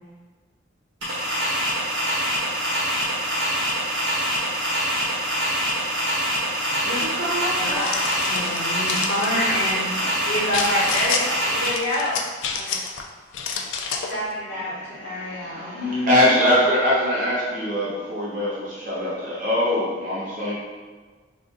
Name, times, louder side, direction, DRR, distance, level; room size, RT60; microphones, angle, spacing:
sound 1, 1.0-11.7, equal, 60° right, 1.2 m, -25 dB
voice 1, 6.7-7.8 9.9-10.3, right 1 dB, 80° right, -8 dB, 0.7 m, -30 dB
sound 2, 7.5-9.3 10.5-11.2 11.6-13.0 13.3-14.2, left 5 dB, 70° left, 0.3 m, -29 dB
voice 2, 8.3-9.9 10.3-12.1 12.4-12.8 13.9-16.4, left 1 dB, 55° left, -9 dB, 1.1 m, -27 dB
voice 3, 14.5-20.5, left 1 dB, 40° right, -7 dB, 0.6 m, -23 dB
2.5 x 2.4 x 3.7 m, 1.4 s
head